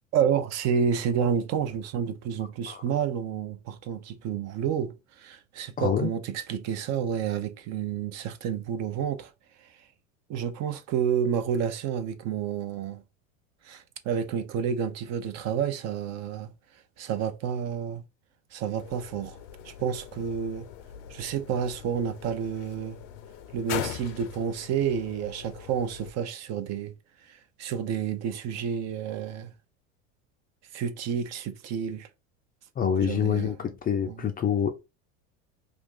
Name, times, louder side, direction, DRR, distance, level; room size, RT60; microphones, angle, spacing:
voice 1, 0.1-9.3 10.3-13.0 13.6-16.5 17.0-18.0 18.5-19.4 19.6-20.7 21.1-23.0 23.5-26.9 27.2-29.5 30.7-32.1 33.0-33.5 34.1-34.2, right 7 dB, 45° right, 0.5 m, -30 dB
voice 2, 5.8-6.1 32.8-34.8, left 8 dB, 25° left, 0.4 m, -26 dB
sound 1, 18.8-26.1, left 10 dB, 65° left, 0.6 m, -41 dB
2.6 x 2.4 x 3.5 m
hypercardioid pair, 95°, 39 cm